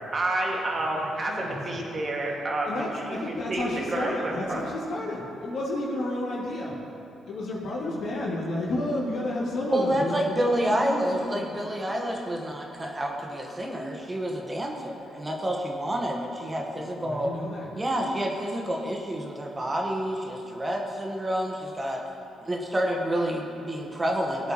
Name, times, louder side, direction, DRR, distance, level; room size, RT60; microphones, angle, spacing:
voice 1, 0.1-4.6, right 2 dB, 40° right, -1 dB, 2.1 m, -29 dB
voice 2, 0.9-1.8 2.6-6.7 7.2-11.5 17.0-17.7, left 1 dB, 65° left, -6 dB, 2.8 m, -31 dB
voice 3, 9.7-17.3 17.7-22.0 22.4-24.5, right 1 dB, 25° right, 0 dB, 1.4 m, -29 dB
18.0 x 7.8 x 3.1 m, 2.8 s
hypercardioid pair, 50°, 0 cm